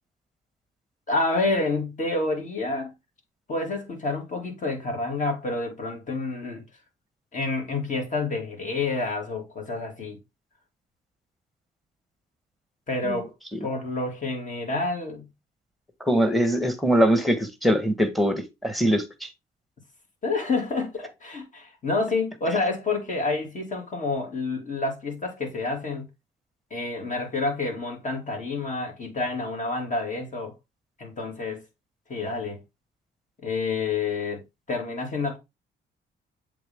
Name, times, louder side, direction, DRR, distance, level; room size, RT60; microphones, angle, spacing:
voice 1, 1.1-2.9 3.5-6.6 7.3-10.2 12.9-13.3 13.6-15.3 20.2-26.1 26.7-30.5 31.0-31.7 32.1-32.6 33.4-35.4, left 3 dB, 40° left, 2.6 m, -28 dB
voice 2, 16.0-19.3, equal, ahead, 1.4 m, -22 dB
7.7 x 3.7 x 3.6 m
cardioid pair, 90°, 20 cm